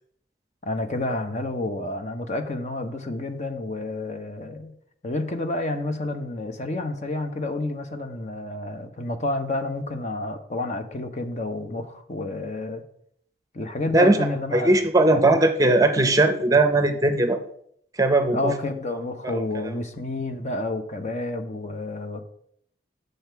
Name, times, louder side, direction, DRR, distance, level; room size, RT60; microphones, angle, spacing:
voice 1, 0.6-4.7 5.0-12.8 13.5-14.8 15.1-15.2 18.3-22.2, left 2 dB, 40° left, 7 dB, 0.8 m, -29 dB
voice 2, 14.5-17.4 18.0-18.5 19.2-19.4, right 2 dB, 20° right, 7 dB, 0.6 m, -19 dB
8.7 x 6.6 x 4.6 m, 0.68 s
head